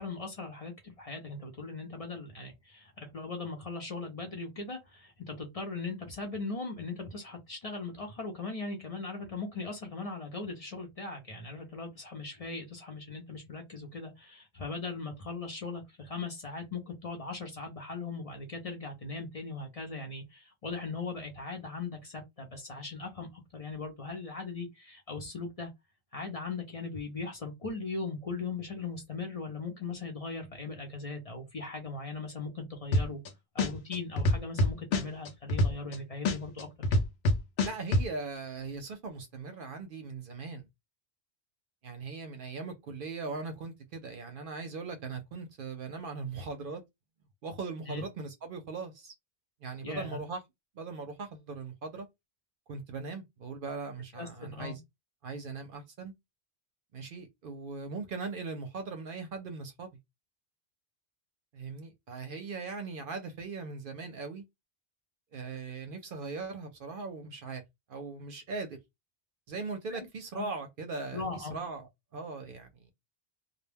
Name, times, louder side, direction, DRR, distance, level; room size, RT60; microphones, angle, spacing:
voice 1, 0.0-25.7 26.1-33.2 33.5-37.0 47.9-48.0 49.8-50.2 54.2-54.8 69.9-70.0 70.3-70.5 71.1-71.6, left 3 dB, 40° left, 0.7 m, -39 dB
sound 1, 32.9-33.3 33.6-36.0 36.3-38.1, left 1 dB, 75° left, 0.9 m, -25 dB
voice 2, 37.6-40.7 41.8-46.8 47.4-49.1 49.6-50.4 50.7-52.1 52.7-54.8 55.2-56.1 56.9-59.9 61.5-64.4 65.3-67.6 67.9-68.8 69.5-72.9, right 4 dB, 60° right, 0.7 m, -39 dB
2.3 x 2.1 x 3.3 m
omnidirectional pair, 1.1 m